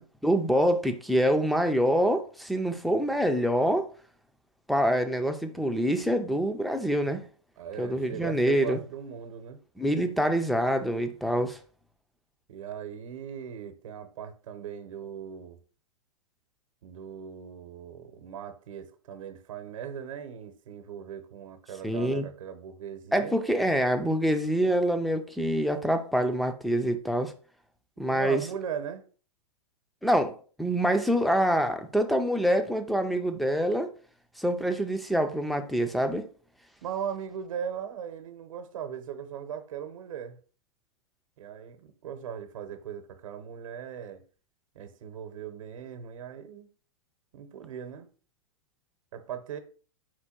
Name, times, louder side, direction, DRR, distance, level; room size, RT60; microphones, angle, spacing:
voice 1, 0.2-3.9 4.7-7.2 7.8-8.8 9.8-11.6 21.8-22.3 23.1-27.3 28.0-28.5 30.0-33.9 34.4-36.3, equal, ahead, 0.3 m, -26 dB
voice 2, 7.6-9.6 12.5-15.6 16.8-23.4 28.1-29.0 36.8-40.4 41.4-44.2 44.7-46.7 47.3-48.1 49.1-49.6, right 8 dB, 75° right, 0.8 m, -39 dB
4.5 x 2.2 x 4.3 m
hypercardioid pair, 130°, 17 cm